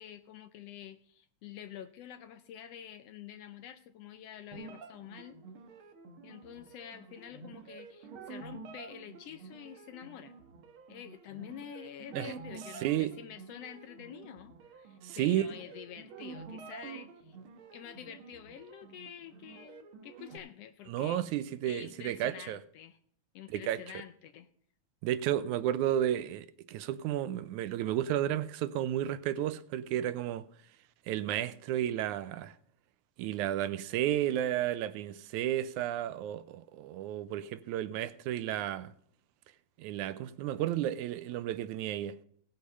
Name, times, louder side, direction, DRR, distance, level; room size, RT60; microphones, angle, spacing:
voice 1, 0.0-5.4 6.2-10.3 10.9-17.4 17.7-23.0 23.3-24.5, left 10 dB, 75° left, 1.5 m, -48 dB
sound 1, 4.5-20.4, right 5 dB, 55° right, 1.8 m, -49 dB
voice 2, 12.8-13.1 15.0-15.5 20.9-22.6 23.5-23.8 25.0-30.5 31.1-32.6 33.2-38.9 39.8-42.2, right 12 dB, 90° right, 2.2 m, -32 dB
17.5 x 6.8 x 5.4 m
omnidirectional pair, 3.3 m